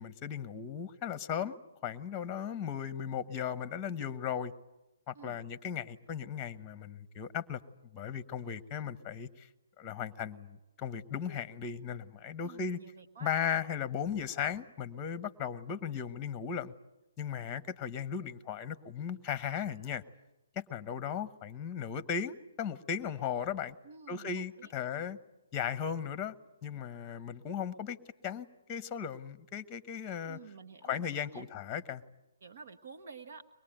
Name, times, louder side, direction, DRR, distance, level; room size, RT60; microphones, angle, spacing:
voice 1, 0.0-1.6 1.8-4.5 5.1-7.6 7.9-9.5 9.8-12.8 13.2-16.7 17.2-20.0 20.5-23.8 24.1-25.2 25.5-26.3 26.6-28.0 28.2-30.4 30.8-32.0, left 8 dB, 20° left, 14 dB, 1.0 m, -36 dB
voice 2, 12.4-13.4 23.8-25.1 30.3-31.5 32.4-33.4, right 5 dB, 55° right, 8 dB, 1.2 m, -51 dB
23.5 x 21.0 x 9.0 m, 0.95 s
figure-of-eight pair, 135°, 0 cm